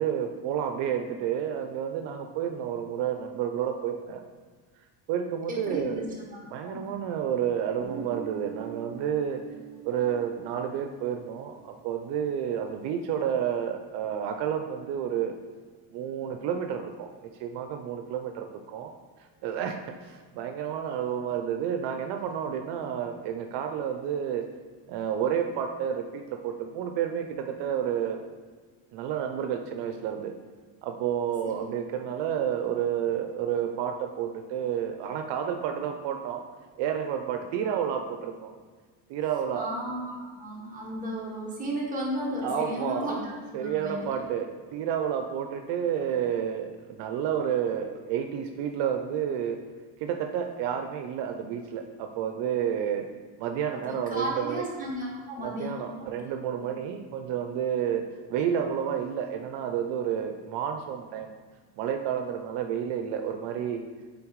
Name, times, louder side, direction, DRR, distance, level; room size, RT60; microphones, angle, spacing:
voice 1, 0.0-4.2 5.1-6.0 6.5-9.4 9.8-15.3 15.9-17.1 17.4-18.9 19.4-19.8 20.0-24.4 24.9-28.2 28.9-30.3 30.8-36.4 36.8-38.5 39.1-39.7 42.4-43.1 43.5-49.6 50.0-53.1 53.4-54.6 55.4-58.0 58.3-61.3 61.8-63.8, right 8 dB, 75° right, 5 dB, 0.6 m, -30 dB
voice 2, 5.5-6.9 31.4-31.7 37.6-37.8 39.5-44.2 53.8-56.1, right 1 dB, 20° right, -5 dB, 1.8 m, -34 dB
Guitar, 7.8-12.4, right 7 dB, 45° right, 0.9 m, -43 dB
8.6 x 3.8 x 3.1 m, 1.5 s
cardioid pair, 125°, 42 cm